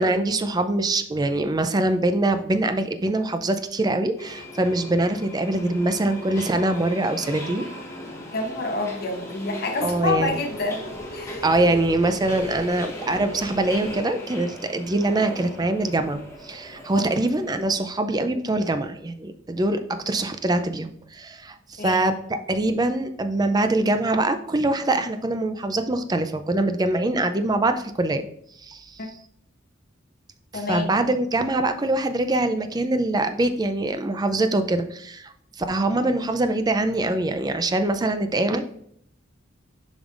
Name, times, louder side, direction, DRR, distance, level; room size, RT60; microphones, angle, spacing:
voice 1, 0.0-7.7 9.8-10.4 11.4-22.2 22.5-28.3 28.6-29.0 30.5-38.6, right 2 dB, 20° right, 8 dB, 0.4 m, -24 dB
Subway metro underground, 4.2-17.8, left 1 dB, 15° left, 1.1 m, -38 dB
voice 2, 8.3-10.8 11.1-11.4 17.1-17.2 21.8-22.1 30.5-30.9, left 3 dB, 50° left, 2 dB, 1.1 m, -28 dB
7.0 x 5.3 x 2.5 m, 0.68 s
head